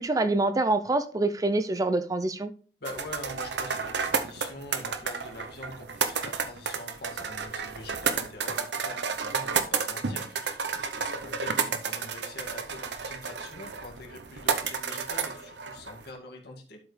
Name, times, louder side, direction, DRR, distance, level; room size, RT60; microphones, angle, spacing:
voice 1, 0.0-2.5, right 2 dB, 20° right, 0.4 m, -26 dB
voice 2, 2.8-16.8, left 2 dB, 65° left, 2.0 m, -44 dB
sound 1, 2.9-16.1, right 5 dB, 70° right, 0.8 m, -31 dB
12.0 x 5.0 x 3.2 m
head